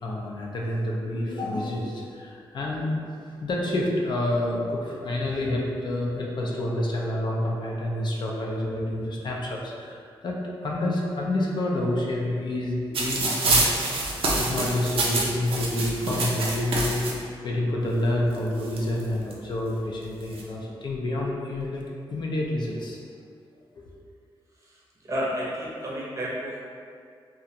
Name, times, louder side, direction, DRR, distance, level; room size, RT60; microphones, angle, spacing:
voice 1, 0.0-2.9 3.4-10.4 10.6-13.8 14.1-21.8 22.1-23.0 23.8-23.9, left 1 dB, 55° left, -2 dB, 0.4 m, -28 dB
sound 1, 12.9-17.1 18.0-18.1 18.3-19.3 20.0-20.4, right 2 dB, 80° right, 0.4 m, -26 dB
voice 2, 24.6-26.6, equal, 35° right, -6 dB, 0.6 m, -32 dB
2.4 x 2.0 x 2.7 m, 2.2 s
cardioid pair, 90°, 9 cm